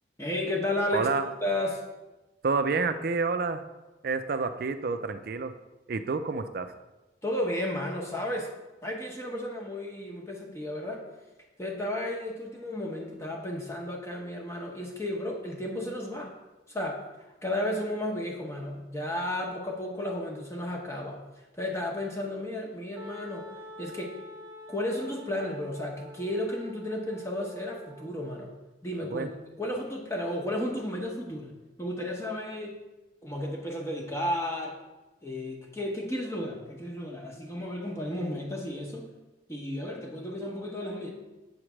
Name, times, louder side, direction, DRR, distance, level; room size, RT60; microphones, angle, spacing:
voice 1, 0.2-1.1 1.4-1.8 7.2-8.5 8.8-11.1 11.6-16.3 16.7-21.2 21.5-23.5 23.8-24.2 24.7-28.5 28.8-29.3 29.6-32.8 33.2-34.8 35.2-39.1 39.5-41.1, left 1 dB, 15° left, -1 dB, 0.8 m, -33 dB
voice 2, 0.9-1.3 2.4-3.6 4.0-5.6 5.9-6.7 29.1-29.3, right 4 dB, 55° right, 9 dB, 0.4 m, -29 dB
Wind instrument woodwind instrument, 23.0-28.6, left 1 dB, 15° right, 0.6 m, -47 dB
7.9 x 3.2 x 6.0 m, 1.1 s
head